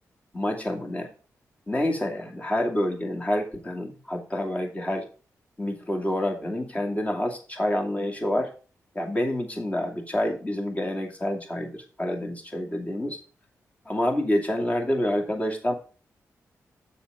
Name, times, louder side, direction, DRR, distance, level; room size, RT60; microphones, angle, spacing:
voice 1, 0.3-1.1 1.7-5.1 5.6-8.5 8.9-13.2 13.9-15.7, left 1 dB, 25° left, 1 dB, 2.5 m, -28 dB
7.1 x 6.2 x 5.2 m, 0.37 s
cardioid pair, 65°, 6 cm